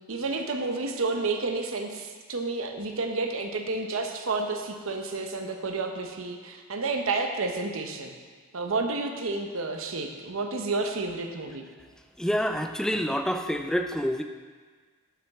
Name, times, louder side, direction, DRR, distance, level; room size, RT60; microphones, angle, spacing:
voice 1, 0.1-8.1 8.5-11.6, right 3 dB, 80° right, 4 dB, 0.8 m, -30 dB
voice 2, 12.2-14.2, equal, 5° left, 5 dB, 0.4 m, -27 dB
11.5 x 5.9 x 3.6 m, 1.5 s
head